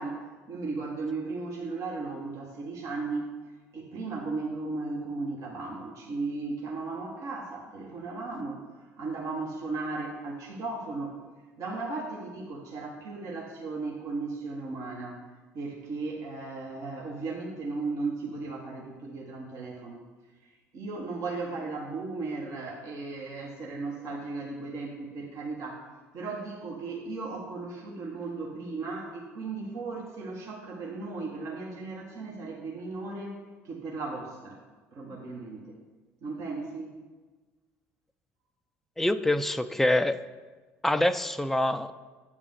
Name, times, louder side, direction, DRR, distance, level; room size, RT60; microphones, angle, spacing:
voice 1, 0.0-3.3 3.7-11.2 11.6-15.2 15.5-20.0 20.4-25.9 26.1-34.6 34.9-35.8 36.2-37.0, right 3 dB, 50° right, -2 dB, 1.1 m, -36 dB
voice 2, 39.0-40.2 40.8-41.9, left 1 dB, 5° left, 11 dB, 0.3 m, -25 dB
8.5 x 3.6 x 6.5 m, 1.3 s
figure-of-eight pair, 60°, 7 cm